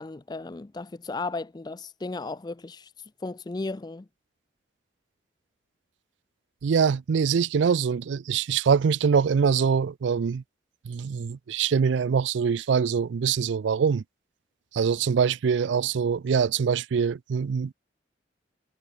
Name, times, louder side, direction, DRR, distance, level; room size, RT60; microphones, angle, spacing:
voice 1, 0.0-2.9 3.2-4.1, left 3 dB, 20° left, 0.4 m, -35 dB
voice 2, 6.6-10.4 10.8-14.0 14.7-17.7, right 6 dB, 75° right, 0.4 m, -24 dB
head